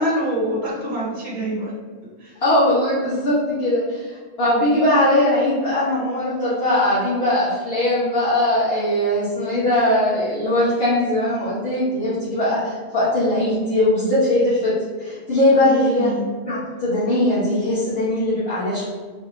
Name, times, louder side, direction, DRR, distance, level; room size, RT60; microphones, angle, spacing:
voice 1, 0.0-1.7 2.2-2.4 15.7-16.3, right 1 dB, 45° right, -4 dB, 1.3 m, -25 dB
voice 2, 2.4-14.7 15.0-16.1 16.5-18.9, left 1 dB, 60° left, -13 dB, 1.5 m, -20 dB
3.3 x 2.9 x 3.9 m, 1.5 s
omnidirectional pair, 1.2 m